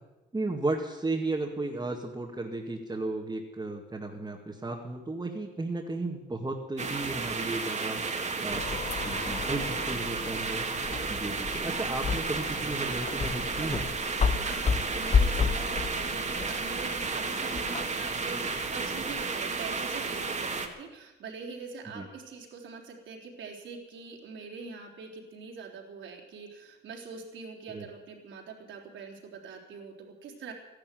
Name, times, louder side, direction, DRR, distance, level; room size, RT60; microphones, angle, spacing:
voice 1, 0.3-8.0 8.4-10.6 11.1-13.9 21.9-22.1 27.7-27.9, right 2 dB, 20° right, -2 dB, 2.1 m, -34 dB
sound 1, 6.8-20.7, right 4 dB, 35° right, 2.1 m, -32 dB
sound 2, 8.5-19.2, left 5 dB, 30° left, 0.8 m, -32 dB
voice 2, 14.2-30.5, right 4 dB, 75° right, -1 dB, 3.8 m, -43 dB
13.5 x 11.5 x 9.2 m, 1.1 s
cardioid pair, 90°, 20 cm